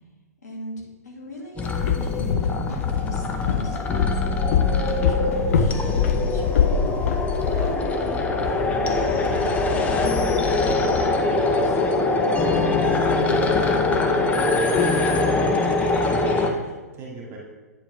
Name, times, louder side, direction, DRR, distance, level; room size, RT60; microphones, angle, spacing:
voice 1, 0.4-6.9 7.6-14.1, equal, 75° left, -2 dB, 1.9 m, -40 dB
Walk footsteps, 1.6-7.7, left 8 dB, 60° left, 0.5 m, -24 dB
sound 1, 1.6-16.5, left 3 dB, 15° left, 0.6 m, -23 dB
voice 2, 4.6-5.0 5.5-5.7 7.4-7.7 15.2-16.7 17.0-17.4, right 5 dB, 25° right, -3 dB, 2.1 m, -34 dB
8.8 x 4.4 x 3.2 m, 1.2 s
hypercardioid pair, 115°, 9 cm